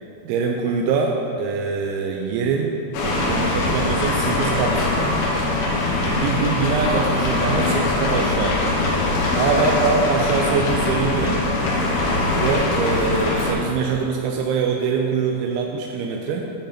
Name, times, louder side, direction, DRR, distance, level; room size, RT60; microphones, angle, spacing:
voice 1, 0.3-2.8 3.0-4.9 6.0-8.6 9.3-11.4 12.4-16.4, right 5 dB, 85° right, 1 dB, 2.9 m, -23 dB
sound 1, 2.9-13.5, left 2 dB, 85° left, 3.6 m, -22 dB
10.0 x 6.3 x 4.2 m, 2.8 s
omnidirectional pair, 5.3 m